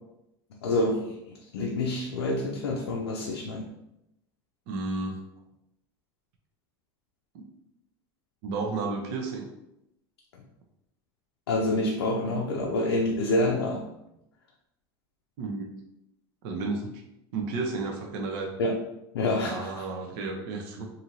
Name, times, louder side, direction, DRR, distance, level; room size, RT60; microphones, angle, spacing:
voice 1, 0.5-3.6 11.5-13.8 18.6-18.8 19.1-19.8, left 2 dB, 90° left, -1 dB, 0.4 m, -27 dB
voice 2, 4.7-5.2 8.4-9.5 15.4-15.7 16.4-16.9 17.3-18.5 19.4-20.9, right 3 dB, 65° right, 2 dB, 0.6 m, -32 dB
2.7 x 2.6 x 2.9 m, 0.85 s
hypercardioid pair, 95°, 13 cm